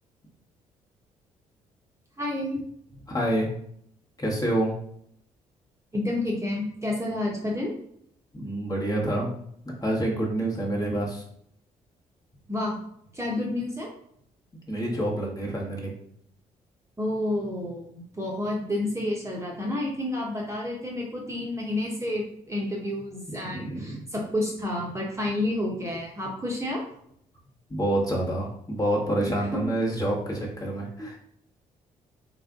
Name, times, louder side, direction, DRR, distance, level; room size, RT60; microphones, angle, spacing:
voice 1, 2.2-2.6 5.9-7.7 12.5-12.8 13.1-13.9 17.0-26.8 31.0-31.1, left 1 dB, 15° right, -3 dB, 1.1 m, -30 dB
voice 2, 3.1-3.5 4.2-4.7 8.3-9.3 9.8-11.2 14.7-15.9 23.5-24.0 27.7-31.2, right 1 dB, 20° left, -3 dB, 1.3 m, -27 dB
3.3 x 2.5 x 3.7 m, 0.70 s
figure-of-eight pair, 45°, 18 cm